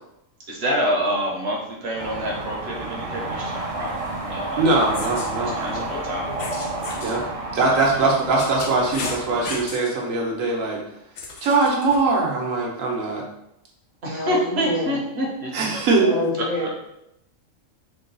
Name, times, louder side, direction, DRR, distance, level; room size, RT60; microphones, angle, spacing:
voice 1, 0.5-4.9 5.5-6.4 7.7-8.0 14.0-15.5 16.6-16.7, equal, 55° right, -2 dB, 1.0 m, -27 dB
sound 1, 2.0-9.7, right 2 dB, 35° right, 0.6 m, -31 dB
voice 2, 4.6-5.8 7.0-7.3 7.5-10.8 11.4-13.2 15.5-16.3, right 3 dB, 75° right, -1 dB, 1.2 m, -21 dB
sound 2, 4.8-5.3 6.4-7.2 8.0-9.9 11.2-12.0, left 3 dB, 80° left, 1.1 m, -34 dB
voice 3, 14.1-15.0 16.0-16.7, left 2 dB, 45° left, -5 dB, 0.9 m, -28 dB
3.7 x 2.3 x 3.9 m, 0.82 s
omnidirectional pair, 1.4 m